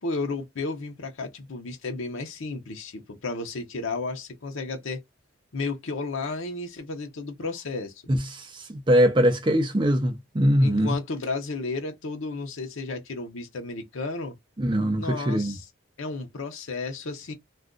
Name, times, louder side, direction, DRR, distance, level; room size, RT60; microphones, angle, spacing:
voice 1, 0.0-5.0 5.5-7.9 10.6-14.3 15.0-15.7 16.0-17.3, left 3 dB, 70° left, 0.7 m, -33 dB
voice 2, 8.1-10.9 14.6-15.5, equal, 20° right, 0.5 m, -22 dB
2.4 x 2.3 x 3.7 m
head